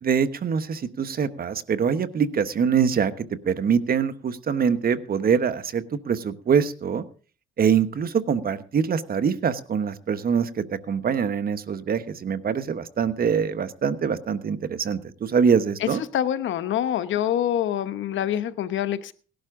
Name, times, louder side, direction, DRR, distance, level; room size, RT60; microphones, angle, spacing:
voice 1, 0.0-7.0 7.6-16.0, right 7 dB, 50° right, 1.2 m, -24 dB
voice 2, 16.1-19.1, left 10 dB, 75° left, 1.1 m, -25 dB
18.5 x 11.5 x 3.8 m
cardioid pair, 90°, 20 cm